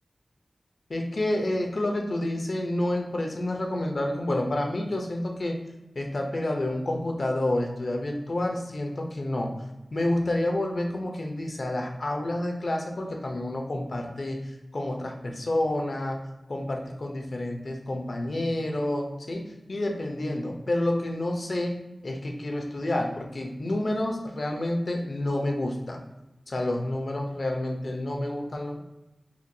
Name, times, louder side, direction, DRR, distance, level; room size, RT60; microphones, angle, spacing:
voice 1, 0.9-5.6 6.0-9.5 9.9-14.4 14.7-16.2 16.5-26.0 26.5-28.8, left 1 dB, 60° left, 1 dB, 0.6 m, -29 dB
4.3 x 2.2 x 2.6 m, 0.99 s
wide cardioid pair, 75°, 0 cm